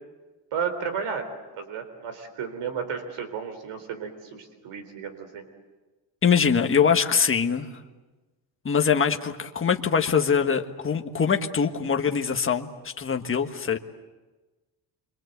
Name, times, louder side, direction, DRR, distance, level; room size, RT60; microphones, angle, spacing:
voice 1, 0.5-1.3 1.6-5.4, right 6 dB, 85° right, 8 dB, 4.1 m, -33 dB
voice 2, 6.2-7.7 8.6-13.8, left 6 dB, 25° left, 4 dB, 1.4 m, -23 dB
27.5 x 24.5 x 8.1 m, 1.2 s
cardioid pair, 170°, 49 cm